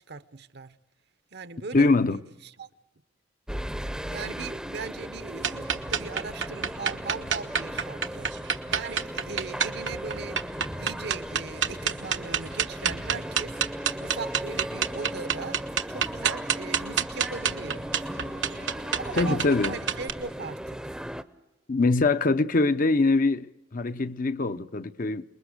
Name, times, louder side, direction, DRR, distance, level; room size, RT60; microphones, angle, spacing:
voice 1, 0.1-0.8 1.3-2.7 4.1-10.4 10.7-13.6 14.0-15.6 15.9-17.9 19.1-21.0, right 4 dB, 65° right, 1.0 m, -39 dB
voice 2, 1.7-2.2 19.1-19.7 21.7-25.2, left 3 dB, 50° left, 0.7 m, -23 dB
sound 1, 3.5-21.2, equal, 5° right, 0.7 m, -37 dB
sound 2, 5.4-20.1, right 7 dB, 80° right, 1.3 m, -29 dB
28.5 x 21.0 x 6.6 m
head